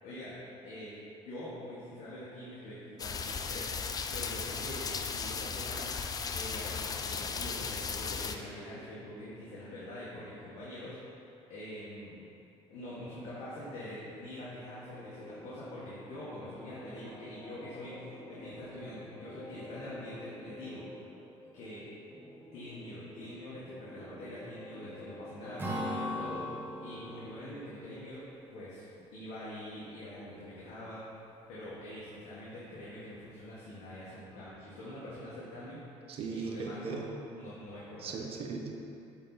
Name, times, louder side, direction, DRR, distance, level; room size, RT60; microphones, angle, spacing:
voice 1, 0.0-0.9 1.2-6.0 6.3-11.0 11.5-12.2 12.7-21.0 21.5-21.9 22.5-31.1 31.5-35.8 36.3-37.0 37.4-38.2, left 1 dB, 75° left, -9 dB, 1.5 m, -45 dB
sound 1, 3.0-8.4, left 5 dB, 35° left, 0.4 m, -36 dB
sound 2, 14.9-26.4, left 1 dB, 15° left, 1.0 m, -49 dB
Acoustic guitar / Strum, 25.6-29.2, equal, 15° right, 1.4 m, -39 dB
voice 2, 36.2-37.0 38.0-38.8, right 4 dB, 55° right, 2 dB, 0.9 m, -38 dB
8.7 x 4.1 x 4.0 m, 2.7 s
cardioid pair, 105°, 11 cm